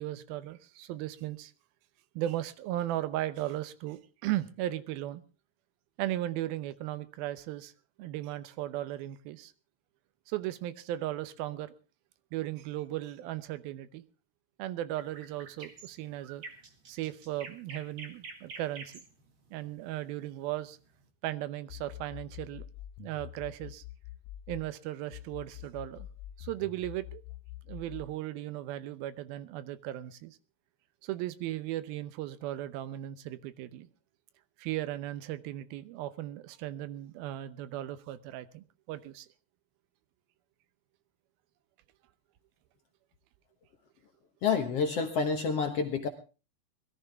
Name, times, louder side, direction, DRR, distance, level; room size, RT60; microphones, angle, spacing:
voice 1, 0.0-1.5 2.2-5.2 6.0-7.7 8.0-9.5 10.3-11.7 12.3-14.0 14.6-16.4 16.9-19.0 19.5-20.8 21.2-22.7 23.0-23.8 24.5-26.1 26.4-27.2 27.7-30.4 31.0-33.9 34.6-39.3, right 14 dB, 85° right, 14 dB, 2.7 m, -36 dB
sound 1, 15.0-21.1, right 4 dB, 40° right, 2.2 m, -48 dB
sound 2, 21.7-24.7 25.1-28.1, left 14 dB, 75° left, 2.5 m, -45 dB
voice 2, 44.4-46.1, left 5 dB, 60° left, 5 dB, 1.7 m, -28 dB
21.0 x 13.5 x 3.5 m, 0.33 s
omnidirectional pair, 4.2 m